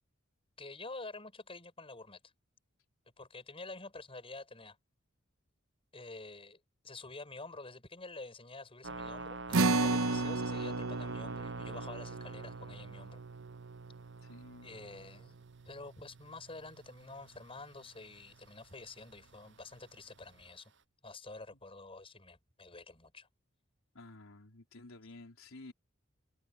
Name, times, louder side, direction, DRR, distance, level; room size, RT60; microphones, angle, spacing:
voice 1, 0.6-2.2 3.2-4.8 5.9-13.2 14.6-20.7 21.0-23.3, left 3 dB, 25° left, 6.4 m, -48 dB
sound 1, 8.8-20.8, right 3 dB, 65° right, 7.8 m, -49 dB
sound 2, 9.5-16.2, right 3 dB, 85° right, 0.9 m, -35 dB
voice 2, 14.2-14.7 23.9-25.7, left 2 dB, 90° left, 3.8 m, -52 dB
head